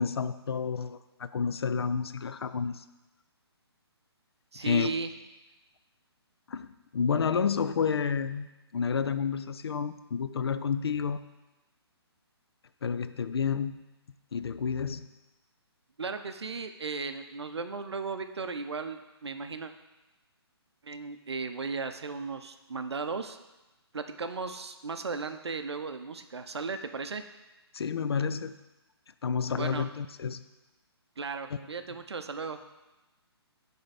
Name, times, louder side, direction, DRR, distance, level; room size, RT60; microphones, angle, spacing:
voice 1, 0.0-2.8 4.6-4.9 6.5-8.5 8.7-11.2 12.8-13.8 14.3-15.1 27.7-28.6 29.2-30.4, left 6 dB, 70° left, 13 dB, 0.4 m, -30 dB
voice 2, 4.5-5.1 16.0-19.7 20.8-23.4 23.9-27.2 29.5-29.9 31.2-32.6, right 4 dB, 75° right, 8 dB, 0.5 m, -36 dB
7.6 x 3.5 x 4.2 m, 1.0 s
figure-of-eight pair, 135°, 14 cm